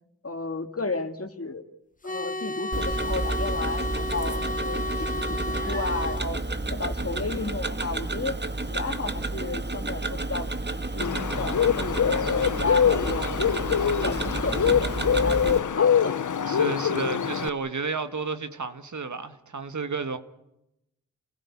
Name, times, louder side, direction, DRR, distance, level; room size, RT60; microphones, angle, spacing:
voice 1, 0.2-1.7 2.0-6.4 6.7-8.3 8.6-13.4 13.8-16.2, left 3 dB, 45° left, 2.5 m, -33 dB
sound 1, 2.0-6.2, left 2 dB, 25° left, 0.9 m, -32 dB
Tick-tock, 2.7-15.6, right 2 dB, 35° right, 1.8 m, -31 dB
Bird, 11.0-17.5, left 7 dB, 70° left, 0.9 m, -24 dB
voice 2, 16.5-20.2, right 4 dB, 65° right, 1.8 m, -31 dB
28.5 x 16.0 x 8.6 m
cardioid pair, 40°, 32 cm